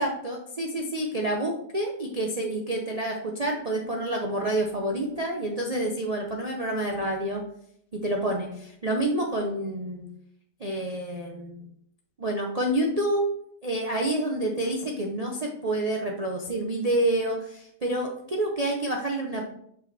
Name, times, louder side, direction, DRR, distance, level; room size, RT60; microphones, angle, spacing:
voice 1, 0.0-7.4 7.9-10.1 10.6-11.6 12.2-13.3 13.6-19.4, right 1 dB, 55° right, -1 dB, 0.4 m, -28 dB
6.0 x 5.0 x 3.3 m, 0.68 s
omnidirectional pair, 1.8 m